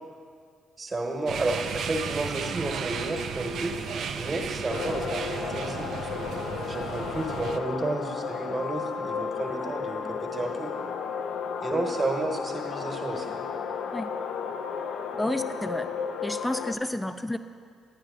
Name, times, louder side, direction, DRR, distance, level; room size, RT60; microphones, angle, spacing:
voice 1, 0.8-3.7 4.1-6.2 6.6-10.7 11.6-13.4, right 2 dB, 35° right, 2 dB, 1.2 m, -31 dB
sound 1, 1.3-7.6, right 6 dB, 65° right, 0.4 m, -34 dB
sound 2, 4.7-16.7, left 6 dB, 65° left, 0.4 m, -33 dB
voice 2, 15.1-15.9 16.2-17.4, left 1 dB, 10° left, 9 dB, 0.5 m, -30 dB
10.5 x 9.6 x 2.5 m, 2.1 s
hypercardioid pair, 45°, 0 cm